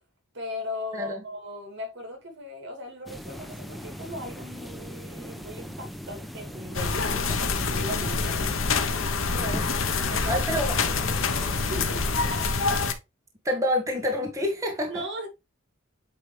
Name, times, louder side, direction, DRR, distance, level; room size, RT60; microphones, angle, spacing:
voice 1, 0.3-8.5 9.3-10.4 11.5-12.0 14.9-15.3, left 1 dB, 60° right, 2.6 m, -38 dB
sound 1, 3.1-12.5, equal, ahead, 0.7 m, -39 dB
sound 2, 6.7-12.9, left 4 dB, 90° left, 1.0 m, -26 dB
voice 2, 10.3-10.8 13.4-15.0, left 1 dB, 15° right, 1.6 m, -27 dB
9.0 x 3.3 x 3.3 m
head